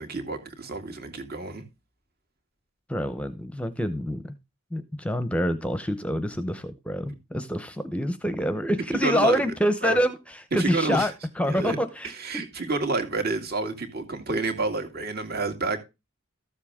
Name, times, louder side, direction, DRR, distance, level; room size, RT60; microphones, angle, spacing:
voice 1, 0.0-1.6 9.0-9.4 9.8-10.0 10.5-11.1 11.5-11.8 12.0-15.8, right 3 dB, 50° right, 2.3 m, -29 dB
voice 2, 2.9-4.3 4.7-12.4, equal, 5° left, 0.8 m, -27 dB
13.5 x 7.4 x 3.6 m
head